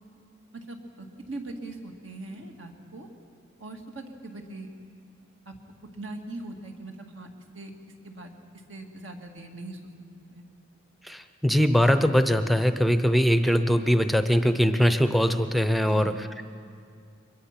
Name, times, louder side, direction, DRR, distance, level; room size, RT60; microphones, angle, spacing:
voice 1, 0.5-3.1 3.6-4.7 5.5-5.6 5.9-7.3 7.5-7.7 8.0-8.3 8.7-9.8 10.3-10.4 15.8-16.1, right 2 dB, 65° right, 2 dB, 2.2 m, -40 dB
voice 2, 11.0-16.4, equal, ahead, 9 dB, 0.7 m, -22 dB
23.5 x 21.5 x 6.0 m, 2.3 s
head